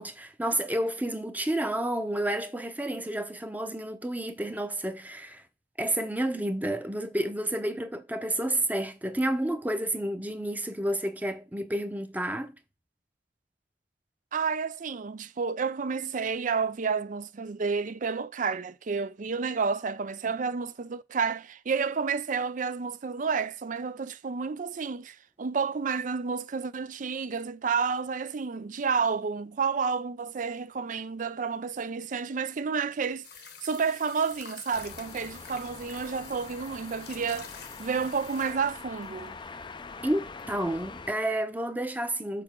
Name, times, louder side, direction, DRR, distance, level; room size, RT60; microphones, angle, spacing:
voice 1, 0.0-5.4 5.8-12.5 40.0-42.4, right 1 dB, 10° right, 0.8 m, -30 dB
voice 2, 14.3-33.2 33.6-37.5 37.8-39.3, right 5 dB, 45° right, 0.5 m, -30 dB
sound 1, 33.2-39.4 40.4-40.5, left 7 dB, 65° left, 1.1 m, -48 dB
sound 2, 34.7-41.1, left 4 dB, 25° left, 0.5 m, -44 dB
6.8 x 6.0 x 3.7 m
head